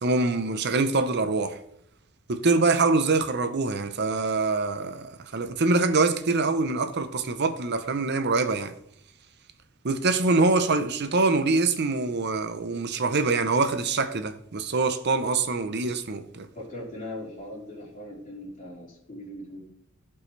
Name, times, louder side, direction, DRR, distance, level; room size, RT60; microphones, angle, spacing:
voice 1, 0.0-1.6 2.3-8.7 9.8-16.5, right 3 dB, 55° right, 0.8 m, -24 dB
voice 2, 16.5-19.6, left 1 dB, 40° left, 4.5 m, -39 dB
16.0 x 5.4 x 3.3 m
head